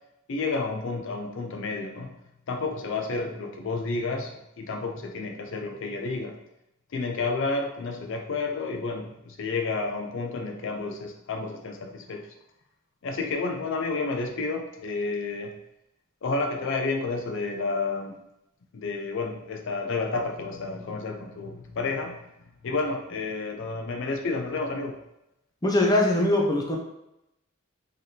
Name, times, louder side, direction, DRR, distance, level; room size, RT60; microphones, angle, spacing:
voice 1, 0.3-2.1 2.5-6.3 6.9-12.2 13.0-15.5 16.2-18.2 18.7-22.2 22.6-24.9, left 3 dB, 65° left, 3 dB, 0.5 m, -30 dB
voice 2, 25.6-26.8, left 1 dB, 20° left, 0 dB, 0.6 m, -22 dB
4.0 x 3.3 x 2.8 m, 0.88 s
head